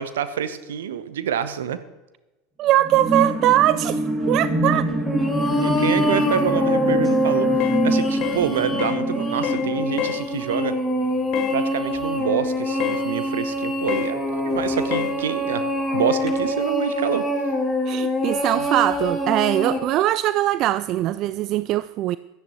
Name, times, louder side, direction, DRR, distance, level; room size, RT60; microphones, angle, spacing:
voice 1, 0.0-1.8 5.6-10.8 11.5-15.7 15.9-17.3, right 9 dB, 70° right, 0.9 m, -27 dB
voice 2, 2.6-4.9 17.9-22.2, right 14 dB, 45° right, 0.3 m, -21 dB
sound 1, 2.8-10.6 11.0-11.1, right 1 dB, 20° right, 2.2 m, -26 dB
sound 2, 5.0-19.8, left 1 dB, 5° left, 3.9 m, -24 dB
sound 3, 7.6-7.8 8.2-8.5 8.8-9.0 9.4-9.7 10.0-10.2 11.3-11.6 12.8-13.1 13.9-14.1 14.9-15.2, left 12 dB, 50° left, 0.9 m, -27 dB
16.5 x 13.0 x 3.0 m
figure-of-eight pair, 75°, 0 cm